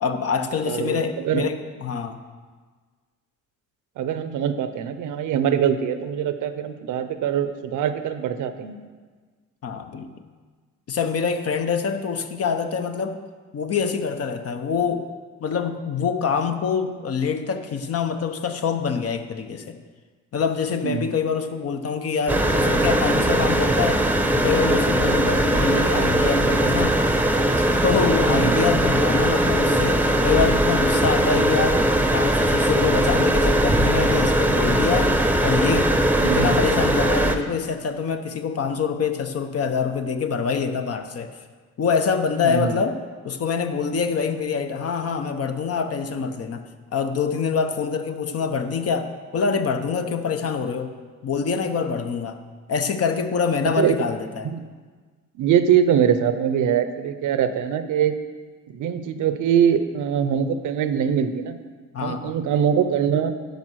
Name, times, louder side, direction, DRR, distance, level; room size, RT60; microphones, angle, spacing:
voice 1, 0.0-2.2 9.6-10.1 10.9-13.2 13.5-15.1 15.4-19.8 20.3-27.0 27.6-31.8 32.1-35.2 35.4-35.9 36.2-41.4 41.8-43.0 43.2-46.6 46.9-49.1 49.3-50.9 51.2-52.4 52.7-54.5 61.9-62.4, left 6 dB, 50° left, 7 dB, 0.9 m, -25 dB
voice 2, 0.7-1.4 4.0-8.8 20.8-21.1 25.2-25.3 28.3-28.6 36.2-36.6 42.4-42.7 53.8-54.0 54.4-54.6 55.4-58.2 58.7-61.6 62.0-63.3, right 8 dB, 80° right, 10 dB, 0.8 m, -23 dB
sound 1, 22.3-37.4, right 1 dB, 5° right, 0.8 m, -20 dB
10.5 x 5.5 x 6.3 m, 1.5 s
cardioid pair, 90°, 30 cm